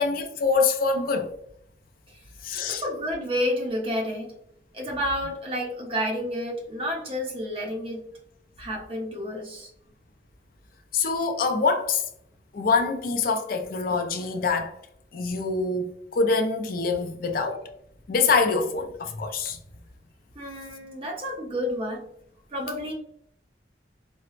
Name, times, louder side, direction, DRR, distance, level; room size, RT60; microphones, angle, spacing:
voice 1, 0.0-1.3 2.4-2.8 10.9-12.0 12.5-14.7 15.1-17.6 18.1-19.6, left 4 dB, 50° left, 0.4 m, -25 dB
voice 2, 2.7-4.3 4.7-8.0 8.6-9.7 20.3-22.0 22.5-22.9, equal, 30° right, 0.7 m, -30 dB
4.2 x 2.0 x 2.4 m
head